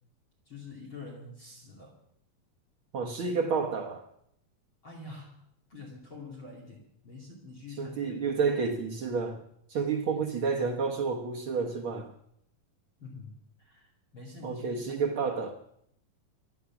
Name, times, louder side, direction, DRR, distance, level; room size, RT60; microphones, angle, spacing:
voice 1, 0.4-2.0 4.8-5.4 5.7-8.2 10.0-10.2 13.0-15.0, left 3 dB, 40° left, -1 dB, 3.3 m, -46 dB
voice 2, 2.9-4.0 7.8-9.4 9.7-12.1 14.4-15.6, right 5 dB, 85° right, 3 dB, 1.1 m, -30 dB
25.0 x 9.1 x 5.9 m, 0.73 s
omnidirectional pair, 4.0 m